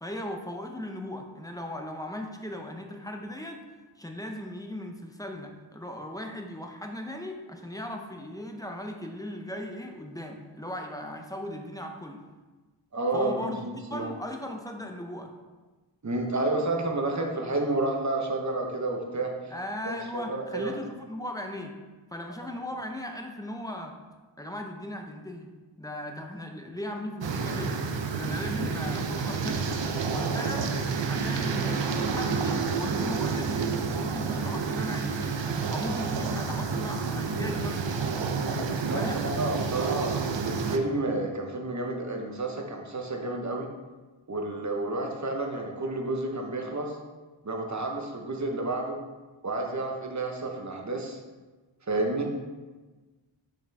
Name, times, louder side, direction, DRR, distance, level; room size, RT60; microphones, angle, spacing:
voice 1, 0.0-3.6 4.0-12.2 13.1-15.3 19.5-21.7 22.1-23.9 24.4-25.5 25.8-27.8 28.2-29.8 30.1-30.7 31.1-35.3 35.7-38.0 38.9-39.2, left 1 dB, 10° left, 3 dB, 0.6 m, -37 dB
voice 2, 12.9-14.1 16.0-19.3 19.8-20.7 38.9-43.7 44.3-47.0 47.4-49.0 49.4-51.2 51.9-52.3, right 2 dB, 35° right, 2 dB, 1.0 m, -30 dB
sound 1, 27.2-40.8, right 5 dB, 70° right, 0.7 m, -29 dB
6.6 x 6.1 x 3.5 m, 1.3 s
wide cardioid pair, 110°, 46 cm